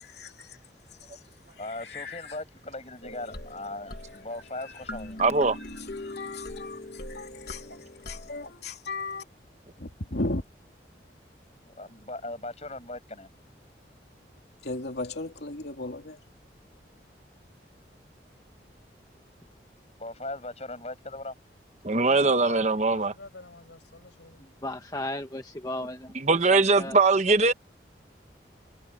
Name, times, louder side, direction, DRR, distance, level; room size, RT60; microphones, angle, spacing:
voice 1, 0.1-0.6 0.9-2.4 4.1-4.2 4.6-9.2 9.8-10.4 14.6-16.2, left 2 dB, 70° left, 2.6 m, -37 dB
voice 2, 1.6-5.2 11.7-13.3 20.0-21.4, left 2 dB, 35° left, 7.4 m, -38 dB
sound 1, 3.0-8.5, left 1 dB, 55° left, 1.7 m, -41 dB
voice 3, 5.2-5.6 21.8-23.1 26.1-27.5, right 3 dB, 40° right, 1.0 m, -21 dB
voice 4, 21.9-24.4, left 2 dB, 90° left, 6.0 m, -46 dB
voice 5, 24.6-26.1 26.5-26.9, left 1 dB, 20° left, 1.2 m, -35 dB
head